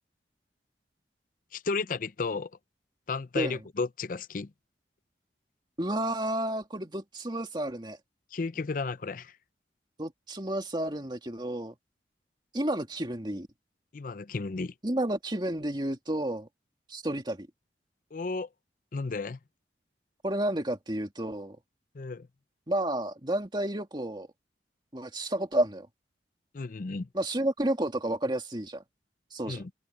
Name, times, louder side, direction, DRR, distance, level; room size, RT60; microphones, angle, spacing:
voice 1, 1.5-2.5 3.1-4.5 8.3-9.3 13.9-14.7 18.1-18.5 18.9-19.4 21.9-22.3 26.5-27.1 29.5-29.7, left 4 dB, 50° left, 0.5 m, -33 dB
voice 2, 5.8-8.0 10.0-11.7 12.5-13.5 14.8-16.5 16.9-17.5 20.2-21.6 22.7-24.3 24.9-25.9 27.1-28.8 29.3-29.6, right 1 dB, 25° right, 2.4 m, -31 dB
head